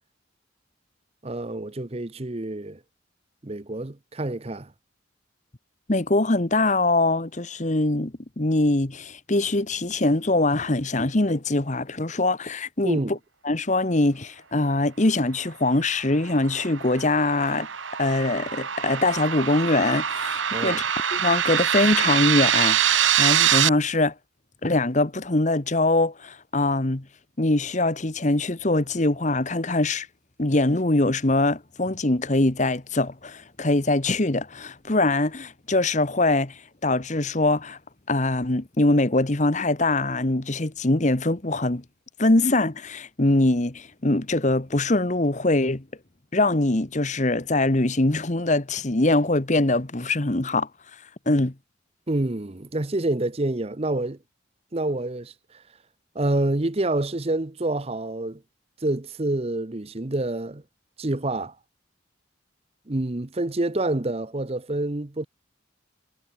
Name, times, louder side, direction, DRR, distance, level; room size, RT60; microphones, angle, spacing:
voice 1, 1.2-2.8 3.4-4.7 12.8-13.2 20.5-20.8 52.1-54.2 54.7-55.6 56.1-58.4 58.8-60.6 61.0-61.6 62.9-65.3, right 2 dB, 30° right, 0.8 m, -27 dB
voice 2, 5.9-13.0 13.4-17.7 18.0-20.9 21.1-24.1 24.6-27.0 27.4-30.1 30.4-37.8 38.1-41.8 42.2-45.8 46.3-50.7 51.3-51.5, left 2 dB, 35° left, 1.3 m, -23 dB
sound 1, 16.0-23.7, right 9 dB, 75° right, 1.8 m, -24 dB
head